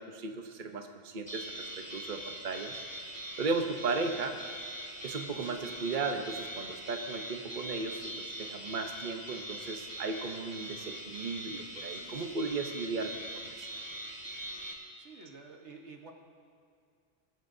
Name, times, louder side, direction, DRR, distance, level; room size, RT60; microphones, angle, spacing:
voice 1, 0.0-2.8 3.4-4.4 5.0-13.7, right 3 dB, 50° right, 5 dB, 1.0 m, -36 dB
sound 1, 1.3-14.7, right 1 dB, 25° right, 1.5 m, -42 dB
voice 2, 15.0-16.1, right 4 dB, 85° right, 2 dB, 1.6 m, -50 dB
21.5 x 14.0 x 2.7 m, 2.3 s
omnidirectional pair, 1.1 m